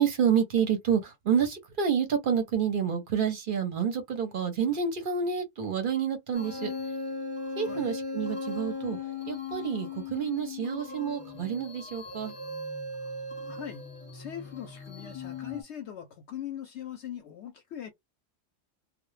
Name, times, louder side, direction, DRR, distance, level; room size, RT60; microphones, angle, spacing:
voice 1, 0.0-6.7 7.6-9.0 9.3-12.3, right 7 dB, 55° right, 0.7 m, -28 dB
sound 1, 6.3-15.6, left 3 dB, 10° left, 0.9 m, -38 dB
voice 2, 13.5-13.8 14.1-17.9, left 10 dB, 65° left, 0.8 m, -40 dB
2.2 x 2.1 x 3.1 m
omnidirectional pair, 1.3 m